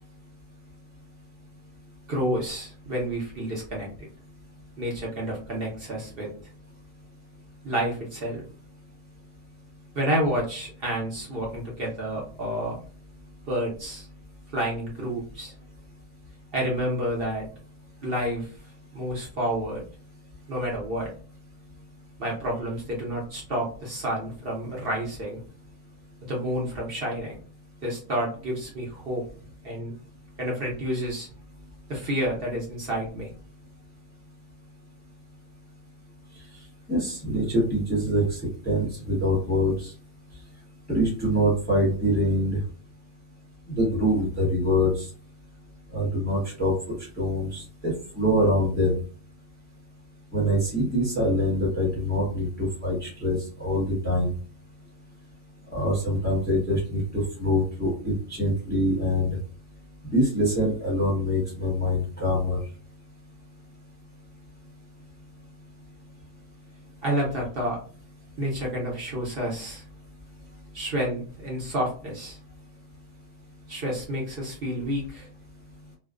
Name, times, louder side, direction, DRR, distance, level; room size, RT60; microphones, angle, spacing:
voice 1, 2.1-4.1 4.8-6.3 7.6-8.4 9.9-12.8 13.5-14.1 14.5-15.6 16.5-17.5 18.0-18.5 18.9-19.8 20.5-21.1 22.2-25.4 26.2-27.3 27.8-29.2 29.6-29.9 30.4-31.3 31.9-33.3 67.0-67.8 68.4-69.8 70.7-72.4 73.7-75.3, equal, 55° right, -3 dB, 0.9 m, -29 dB
voice 2, 36.9-38.4 38.6-39.9 40.9-42.6 43.7-45.1 45.9-49.0 50.3-54.3 55.7-59.4 60.1-62.6, equal, 10° left, -4 dB, 0.8 m, -24 dB
2.4 x 2.2 x 2.3 m, 0.40 s
omnidirectional pair, 1.3 m